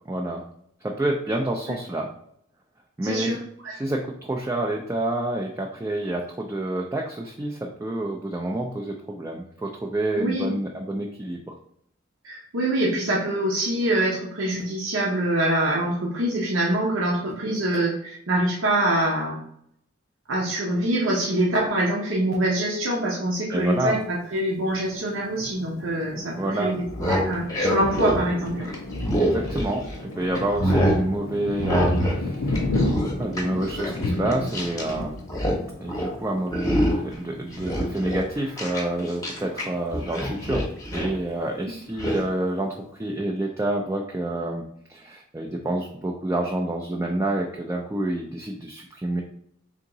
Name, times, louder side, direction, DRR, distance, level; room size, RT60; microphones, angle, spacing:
voice 1, 0.1-0.4 0.8-2.1 3.0-3.4 3.7-11.6 23.5-24.0 26.4-26.7 29.2-29.8 30.2-32.6 33.2-35.2 35.8-40.7 40.9-44.6 44.9-49.2, right 1 dB, 15° right, 0 dB, 0.3 m, -28 dB
voice 2, 3.0-3.4 3.6-3.7 10.2-10.5 12.2-19.4 20.3-24.0 24.3-28.7, right 1 dB, 80° right, -4 dB, 0.8 m, -24 dB
Thunder, 24.7-39.0 39.5-39.7 40.0-40.6, left 2 dB, 85° left, 0.5 m, -33 dB
sound 1, 26.8-30.0 30.3-31.0 31.6-32.2 32.5-34.9 35.2-35.6 35.9-36.1 36.5-37.1 37.5-39.6 39.9-41.2 42.0-42.2, equal, 20° left, 0.8 m, -25 dB
3.5 x 2.9 x 3.8 m, 0.69 s
head